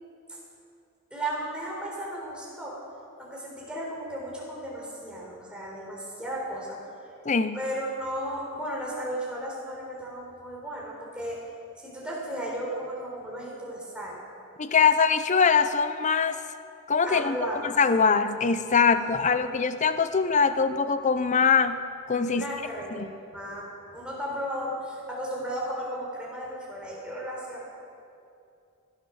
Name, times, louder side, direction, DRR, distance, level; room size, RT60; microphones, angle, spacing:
voice 1, 1.1-2.8 3.2-6.8 7.5-11.4 11.8-14.2 17.0-17.8 18.9-19.5 22.3-27.8, right 1 dB, 5° right, -4 dB, 3.9 m, -35 dB
voice 2, 7.2-7.6 14.6-16.4 16.9-17.4 17.6-22.5 22.9-23.1, left 5 dB, 35° left, 11 dB, 0.6 m, -23 dB
16.0 x 12.0 x 6.3 m, 2.6 s
head